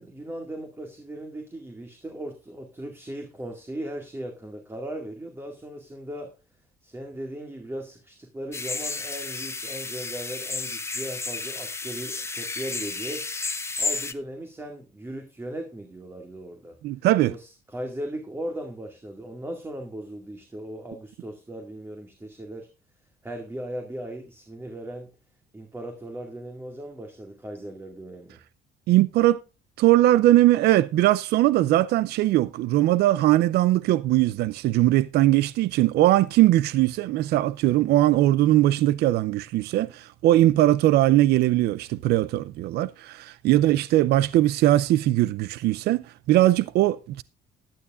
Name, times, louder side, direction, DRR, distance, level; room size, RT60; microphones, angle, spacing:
voice 1, 0.0-6.3 6.8-13.2 13.8-16.8 17.3-22.7 23.2-25.1 25.5-28.4 43.5-43.8, right 1 dB, 15° right, 2.2 m, -37 dB
sound 1, 8.5-14.1, left 3 dB, 15° left, 1.1 m, -32 dB
voice 2, 16.8-17.3 28.9-29.4 29.8-47.2, right 15 dB, 75° right, 0.5 m, -20 dB
15.5 x 11.5 x 2.5 m
cardioid pair, 110°, 17 cm